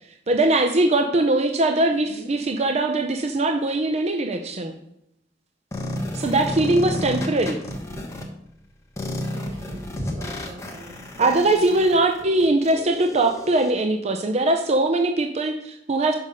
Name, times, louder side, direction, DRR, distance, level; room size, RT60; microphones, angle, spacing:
voice 1, 0.3-4.8 6.1-7.6 11.2-16.1, right 2 dB, 35° right, 5 dB, 0.5 m, -21 dB
sound 1, 5.7-8.2 9.0-13.7, left 1 dB, 15° left, 1.2 m, -31 dB
voice 2, 9.3-11.7, right 1 dB, 85° right, -3 dB, 2.8 m, -41 dB
6.5 x 5.2 x 5.3 m, 0.80 s
head